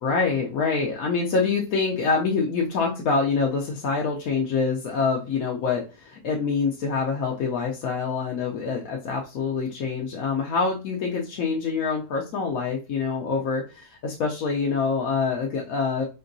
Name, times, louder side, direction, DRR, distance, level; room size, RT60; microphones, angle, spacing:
voice 1, 0.0-16.0, left 5 dB, 70° left, -1 dB, 1.0 m, -25 dB
4.4 x 2.8 x 2.6 m, 0.31 s
omnidirectional pair, 1.7 m